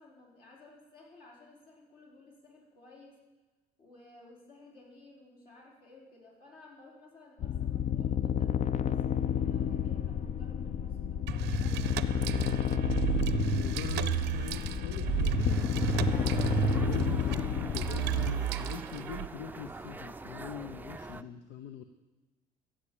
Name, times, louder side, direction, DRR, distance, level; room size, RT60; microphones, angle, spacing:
voice 1, 0.0-3.2 3.8-12.3, left 2 dB, 60° left, -2 dB, 4.9 m, -56 dB
sound 1, 7.4-18.3, left 9 dB, 45° left, 0.6 m, -31 dB
sound 2, 11.3-19.3, right 12 dB, 85° right, 0.6 m, -33 dB
voice 2, 13.5-21.8, left 8 dB, 80° left, 9 dB, 0.8 m, -42 dB
sound 3, 15.0-21.2, right 3 dB, 10° right, 0.5 m, -44 dB
15.0 x 7.6 x 8.5 m, 1.1 s
cardioid pair, 110°, 17 cm